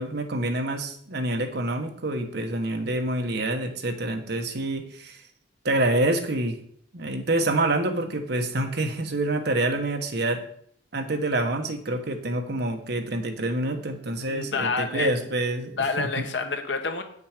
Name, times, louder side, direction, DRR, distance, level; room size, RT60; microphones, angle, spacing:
voice 1, 0.0-5.2 5.6-6.6 6.9-10.4 10.9-16.3, right 2 dB, 65° right, 5 dB, 1.3 m, -27 dB
voice 2, 14.3-15.3 15.8-17.0, left 4 dB, 80° left, 6 dB, 1.3 m, -28 dB
8.6 x 6.4 x 5.1 m, 0.66 s
head